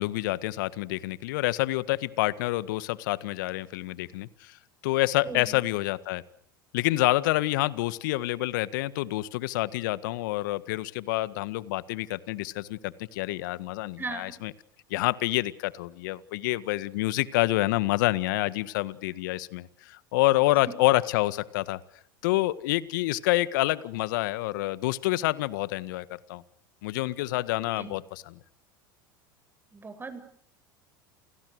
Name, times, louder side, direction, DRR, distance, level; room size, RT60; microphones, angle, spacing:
voice 1, 0.0-4.5 4.8-6.2 6.7-14.5 14.9-21.8 22.2-26.4 26.8-28.4, left 18 dB, 65° left, 15 dB, 1.7 m, -27 dB
voice 2, 5.2-5.6 14.0-14.3 27.8-27.9 29.7-30.2, right 4 dB, 20° right, 9 dB, 7.8 m, -38 dB
30.0 x 28.5 x 6.7 m, 0.64 s
hypercardioid pair, 80°, 11 cm